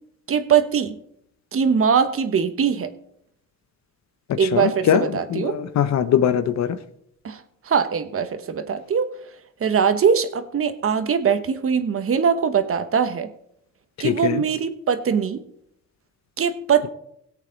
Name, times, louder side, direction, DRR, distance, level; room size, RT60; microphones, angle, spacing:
voice 1, 0.3-1.0 1.5-2.9 4.4-5.6 7.2-9.1 9.6-13.3 14.0-15.4 16.4-16.9, right 7 dB, 45° right, 10 dB, 1.2 m, -21 dB
voice 2, 4.3-6.8 14.0-14.4, left 9 dB, 65° left, 12 dB, 0.9 m, -22 dB
17.5 x 8.3 x 4.0 m, 0.72 s
cardioid pair, 90°, 30 cm